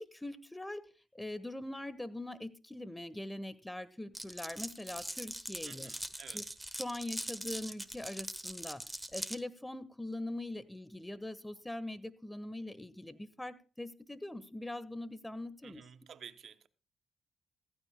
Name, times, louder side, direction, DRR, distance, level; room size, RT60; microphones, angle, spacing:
voice 1, 0.0-5.9 6.3-6.4 6.8-8.8 9.1-15.8, left 1 dB, 10° left, 1.3 m, -42 dB
Glass, 4.1-9.4, right 1 dB, 5° right, 1.2 m, -41 dB
voice 2, 5.6-6.6 15.6-16.7, right 8 dB, 65° right, 0.7 m, -52 dB
15.5 x 15.0 x 2.2 m
supercardioid pair, 55°, 0 cm